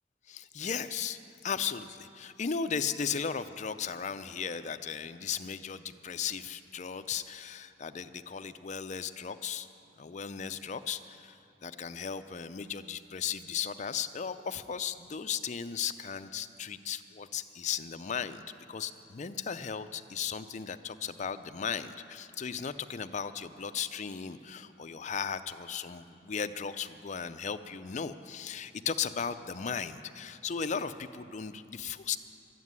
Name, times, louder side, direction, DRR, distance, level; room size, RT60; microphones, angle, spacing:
voice 1, 0.3-9.7 10.0-18.4 18.7-32.2, left 7 dB, 40° left, 10 dB, 0.5 m, -36 dB
12.0 x 9.3 x 9.6 m, 2.6 s
head